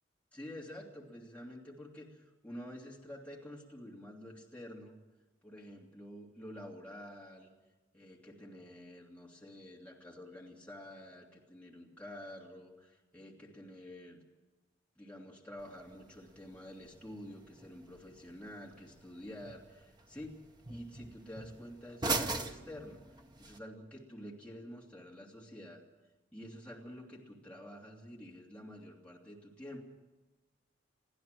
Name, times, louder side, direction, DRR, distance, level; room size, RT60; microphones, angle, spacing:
voice 1, 0.3-5.0 5.4-7.5 7.9-14.2 15.0-20.4 20.7-23.0 23.4-25.8 26.3-29.9, left 1 dB, 5° left, -3 dB, 2.8 m, -49 dB
sound 1, 15.6-23.6, right 3 dB, 20° right, 1.1 m, -42 dB
22.5 x 15.0 x 7.7 m, 1.1 s
head